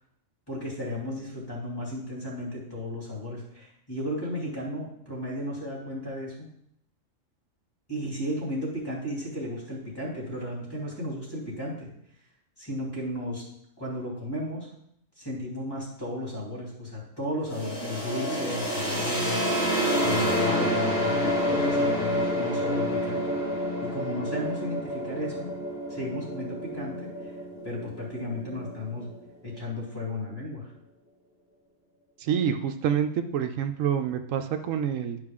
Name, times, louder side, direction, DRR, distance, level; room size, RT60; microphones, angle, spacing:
voice 1, 0.5-6.5 7.9-11.9 12.6-13.4 13.8-14.7 15.2-19.6 20.0-25.5 25.9-27.3 27.6-29.1 29.4-30.7, left 1 dB, 15° left, -5 dB, 2.6 m, -34 dB
sound 1, 17.5-29.2, equal, 35° left, 1.9 m, -28 dB
voice 2, 32.2-35.2, right 8 dB, 80° right, 7 dB, 1.0 m, -27 dB
10.5 x 4.9 x 3.6 m, 0.74 s
omnidirectional pair, 1.3 m